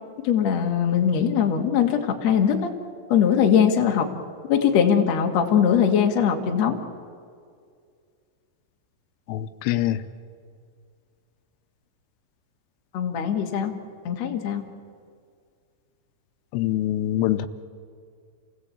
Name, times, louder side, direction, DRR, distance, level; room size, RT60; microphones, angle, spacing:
voice 1, 0.2-2.7 3.1-4.1 4.5-6.7 12.9-13.7 14.0-14.6, left 8 dB, 55° left, 3 dB, 1.9 m, -21 dB
voice 2, 9.3-10.0 16.5-17.5, left 13 dB, 85° left, 11 dB, 3.3 m, -24 dB
29.0 x 17.5 x 8.5 m, 2.2 s
omnidirectional pair, 5.7 m